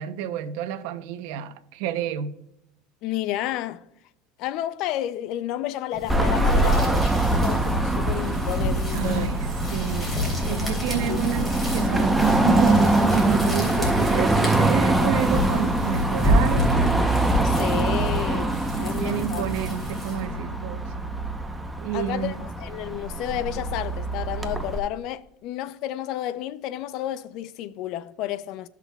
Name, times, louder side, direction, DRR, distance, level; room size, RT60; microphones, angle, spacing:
voice 1, 0.0-2.4 8.9-16.7 18.8-20.9 21.8-22.3, right 10 dB, 70° right, 0.7 m, -29 dB
voice 2, 3.0-3.8 4.4-9.4 10.5-10.8 11.1-11.2 17.4-19.4 21.9-28.7, left 13 dB, 60° left, 0.5 m, -31 dB
sound 1, 5.9-20.4, equal, 15° left, 3.3 m, -28 dB
Car passing by / Traffic noise roadway noise / Engine, 6.1-24.8, right 2 dB, 5° right, 0.8 m, -24 dB
15.5 x 5.9 x 2.3 m
supercardioid pair, 105°, 0 cm